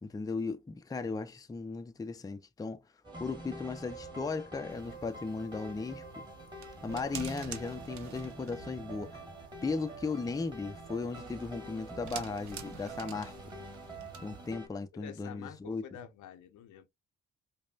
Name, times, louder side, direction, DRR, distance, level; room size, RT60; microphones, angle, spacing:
voice 1, 0.0-2.8 3.2-6.3 6.8-9.2 9.6-13.3 14.2-15.8, left 4 dB, 10° left, 0.5 m, -36 dB
sound 1, 3.0-14.7, right 1 dB, 15° right, 1.5 m, -46 dB
sound 2, 4.7-14.5, right 9 dB, 70° right, 0.8 m, -49 dB
voice 2, 14.9-16.9, left 9 dB, 80° left, 0.7 m, -48 dB
5.1 x 2.2 x 2.3 m
cardioid pair, 90°, 30 cm